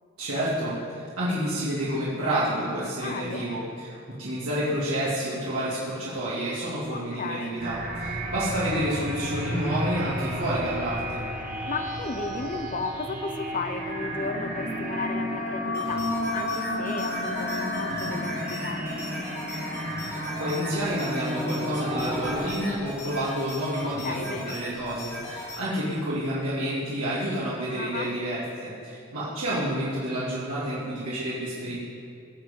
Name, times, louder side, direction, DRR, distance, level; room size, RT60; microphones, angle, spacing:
voice 1, 0.2-3.9 4.2-11.2 20.0-31.8, right 1 dB, 85° right, -9 dB, 2.7 m, -29 dB
voice 2, 3.0-3.6 6.9-7.6 11.4-19.4 23.8-24.6 27.8-28.1, left 3 dB, 35° left, 8 dB, 0.6 m, -35 dB
sound 1, 7.6-22.5, equal, 35° right, 2.0 m, -32 dB
sound 2, 15.7-25.6, left 1 dB, 15° left, 3.7 m, -38 dB
17.5 x 6.9 x 5.4 m, 2.4 s
head